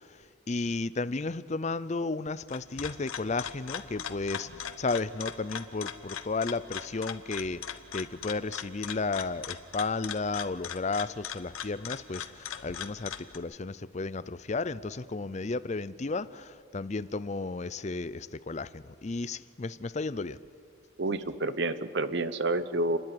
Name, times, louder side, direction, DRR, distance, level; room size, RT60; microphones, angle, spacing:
voice 1, 0.1-20.4, left 3 dB, 35° left, 16 dB, 0.5 m, -33 dB
sound 1, 2.3-13.4, left 8 dB, 85° left, 1.1 m, -40 dB
voice 2, 21.0-23.0, right 2 dB, 55° right, 13 dB, 0.9 m, -29 dB
29.5 x 10.5 x 9.7 m, 2.1 s
head